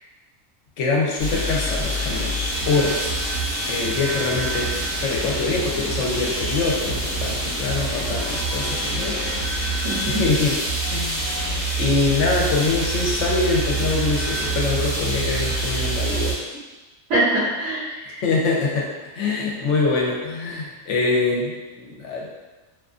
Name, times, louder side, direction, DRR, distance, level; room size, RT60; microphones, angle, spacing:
voice 1, 0.8-3.3 3.7-9.2 10.1-10.6 10.9-16.4 18.2-18.9 19.1-22.3, left 3 dB, 70° left, -2 dB, 0.9 m, -24 dB
sound 1, 1.2-16.3, right 2 dB, 45° right, 0.8 m, -26 dB
voice 2, 9.8-10.2 17.1-18.2, right 1 dB, 70° right, -8 dB, 1.0 m, -23 dB
2.5 x 2.4 x 2.3 m, 1.2 s
omnidirectional pair, 1.4 m